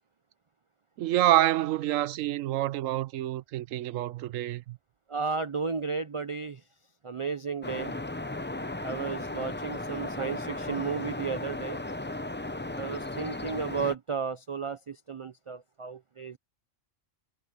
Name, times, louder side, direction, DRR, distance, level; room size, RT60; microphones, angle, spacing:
voice 1, 1.0-4.8, right 13 dB, 80° right, 1.0 m, -27 dB
voice 2, 5.1-6.6 7.0-7.9 8.8-11.8 12.8-16.4, right 5 dB, 55° right, 0.3 m, -33 dB
sound 1, 7.6-13.9, left 2 dB, 15° left, 0.5 m, -36 dB
omnidirectional pair, 1.3 m